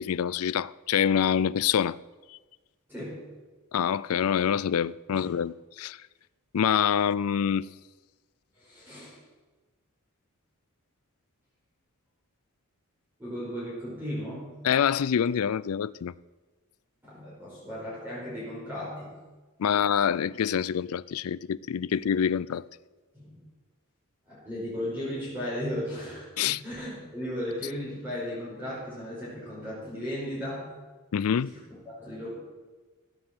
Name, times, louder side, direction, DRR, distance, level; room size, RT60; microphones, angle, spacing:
voice 1, 0.0-2.0 2.3-2.4 3.7-6.0 6.5-7.7 14.6-16.1 19.6-22.6 26.4-26.6 31.1-31.5, left 8 dB, 80° left, 0.4 m, -26 dB
voice 2, 2.9-3.2 5.1-5.2 8.6-9.2 13.2-14.5 17.0-19.1 23.1-23.4 24.3-30.6 31.9-32.3, equal, 10° right, 5.2 m, -36 dB
15.5 x 9.5 x 7.9 m
head